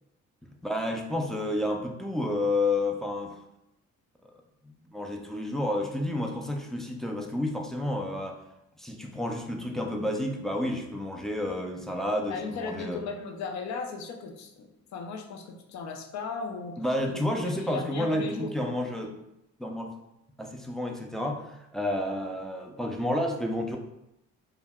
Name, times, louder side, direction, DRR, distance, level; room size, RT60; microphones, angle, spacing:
voice 1, 0.4-3.4 4.6-8.4 8.8-13.0 16.8-19.1 19.6-19.9 20.4-23.8, left 1 dB, ahead, 1 dB, 0.3 m, -30 dB
voice 2, 12.3-16.8 17.1-17.2 17.4-18.7, left 4 dB, 65° left, 4 dB, 0.5 m, -36 dB
2.1 x 2.1 x 3.4 m, 0.86 s
cardioid pair, 90°, 30 cm